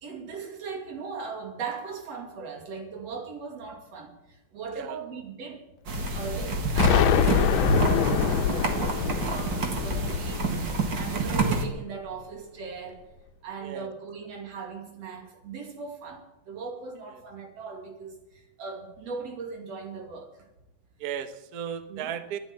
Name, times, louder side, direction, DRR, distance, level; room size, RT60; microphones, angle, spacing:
voice 1, 0.0-4.1 4.5-5.6 6.1-10.7 10.9-13.0 13.4-18.2 18.6-20.3 21.9-22.2, right 5 dB, 60° right, 4 dB, 3.5 m, -38 dB
sound 1, 5.9-11.6, right 3 dB, 45° right, 2.1 m, -28 dB
Explosion, 6.8-11.6, left 8 dB, 75° left, 2.1 m, -25 dB
voice 2, 21.0-22.4, right 9 dB, 75° right, 10 dB, 0.8 m, -35 dB
13.0 x 11.0 x 9.1 m, 0.91 s
omnidirectional pair, 3.4 m